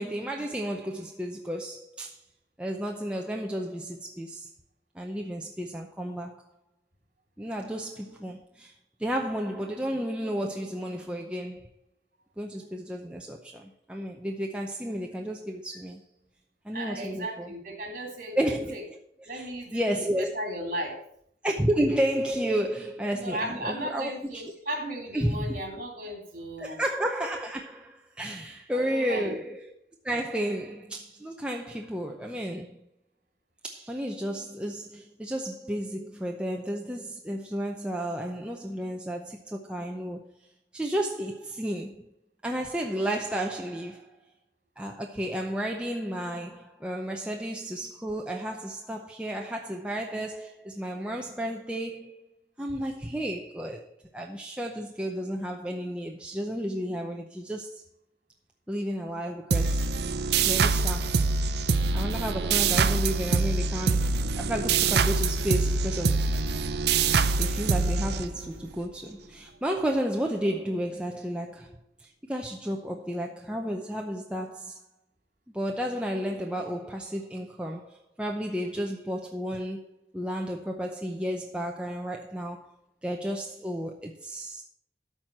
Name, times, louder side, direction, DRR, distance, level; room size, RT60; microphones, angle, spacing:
voice 1, 0.0-2.2 2.6-4.5 4.9-6.4 7.4-8.7 9.0-11.7 12.4-16.0 16.6-17.5 18.3-20.3 21.4-24.4 25.1-25.6 26.6-29.7 30.0-32.8 33.6-40.2 40.7-42.1 42.4-44.1 44.8-52.2 52.6-53.9 54.1-57.8 58.7-59.9 60.3-61.3 61.9-66.3 67.4-74.8 75.5-82.7 83.0-84.6, equal, 5° right, 0.6 m, -32 dB
voice 2, 16.7-18.8 19.3-19.8 20.2-21.0 23.1-26.8 28.7-29.4, right 1 dB, 45° right, 3.1 m, -35 dB
sound 1, 59.5-68.7, right 4 dB, 65° right, 0.6 m, -25 dB
12.5 x 4.5 x 7.3 m
head